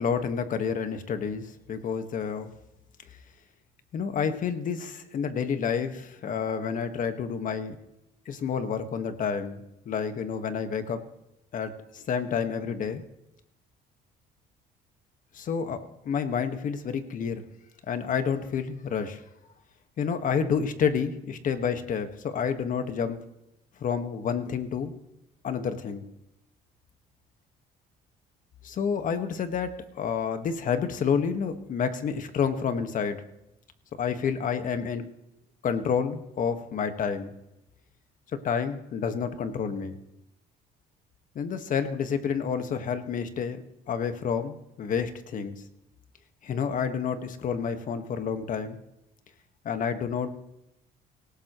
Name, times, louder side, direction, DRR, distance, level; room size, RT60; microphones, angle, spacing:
voice 1, 0.0-2.5 3.9-7.8 8.2-11.0 11.5-13.0 15.3-15.8 16.0-17.4 17.9-19.2 20.0-23.2 23.8-24.9 25.4-26.0 28.6-33.2 34.0-35.1 35.6-37.3 38.4-40.0 41.3-45.6 46.4-48.8 49.6-50.3, left 6 dB, 50° left, 8 dB, 1.6 m, -29 dB
19.0 x 17.0 x 3.1 m, 0.88 s
cardioid pair, 110°, 17 cm